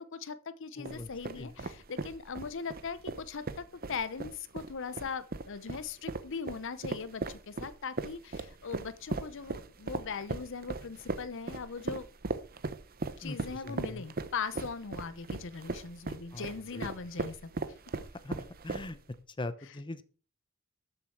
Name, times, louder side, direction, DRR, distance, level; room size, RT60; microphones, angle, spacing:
voice 1, 0.0-12.1 13.2-17.5, left 5 dB, 60° left, 15 dB, 0.7 m, -40 dB
voice 2, 0.8-1.7 13.2-14.1 16.3-16.9 18.2-19.0 19.3-20.0, left 2 dB, 20° left, 12 dB, 0.8 m, -42 dB
sound 1, 0.9-19.2, right 3 dB, 45° right, 0.8 m, -38 dB
13.0 x 7.3 x 4.7 m, 0.38 s
head